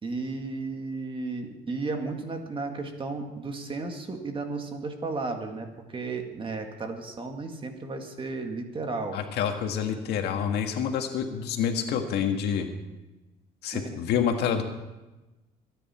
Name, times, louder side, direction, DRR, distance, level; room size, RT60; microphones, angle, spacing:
voice 1, 0.0-9.2 13.7-14.0, right 3 dB, 30° right, 4 dB, 2.1 m, -34 dB
voice 2, 9.1-12.7 13.6-14.6, left 8 dB, 75° left, 5 dB, 1.8 m, -27 dB
23.5 x 10.0 x 4.4 m, 1.1 s
cardioid pair, 110°, 17 cm